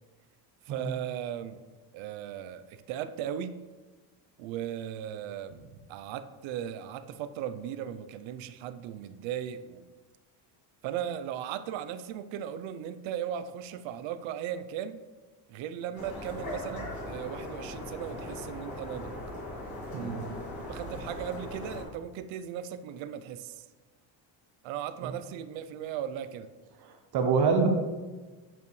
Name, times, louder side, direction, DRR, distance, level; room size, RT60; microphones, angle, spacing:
voice 1, 0.7-1.6 1.9-3.6 4.4-9.8 10.8-15.0 15.5-19.1 20.7-23.6 24.6-26.5, right 10 dB, 85° right, 12 dB, 0.6 m, -37 dB
sound 1, 15.9-21.8, left 1 dB, 40° left, 2.2 m, -39 dB
voice 2, 19.9-20.2 25.0-25.1 27.1-27.7, right 5 dB, 55° right, 5 dB, 0.9 m, -25 dB
8.9 x 5.5 x 3.1 m, 1.3 s
cardioid pair, 170°, 45 cm